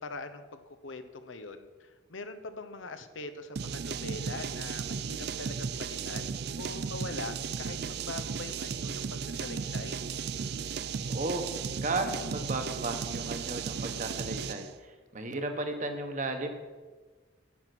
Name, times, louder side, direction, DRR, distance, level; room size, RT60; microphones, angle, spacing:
voice 1, 0.0-10.0, left 3 dB, 90° left, 8 dB, 0.9 m, -43 dB
sound 1, 3.6-14.7, right 6 dB, 55° right, 0.4 m, -35 dB
voice 2, 11.1-11.5 11.8-16.5, right 2 dB, 40° right, 6 dB, 1.2 m, -34 dB
10.5 x 9.0 x 6.1 m, 1.4 s
head